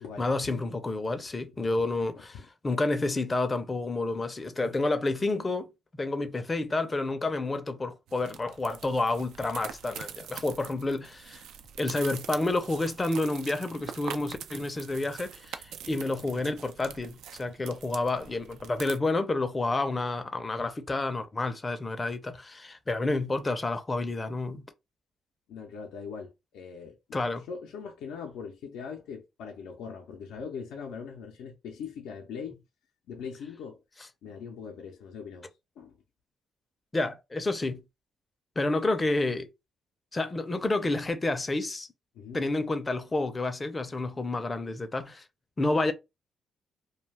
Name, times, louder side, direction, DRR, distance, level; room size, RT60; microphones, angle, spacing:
voice 1, 0.0-2.4 2.6-11.4 11.8-24.6 27.1-27.4 36.9-37.8 38.6-39.5 40.1-41.9 42.3-45.2 45.6-45.9, left 2 dB, 25° left, 0.5 m, -29 dB
voice 2, 2.1-2.5 25.5-27.2 27.5-32.6 33.1-33.8 34.2-35.5 35.8-36.0 42.1-42.4, left 6 dB, 85° left, 0.5 m, -41 dB
sound 1, 8.1-19.0, right 8 dB, 80° right, 0.3 m, -44 dB
2.3 x 2.3 x 3.2 m
cardioid pair, 90°, 0 cm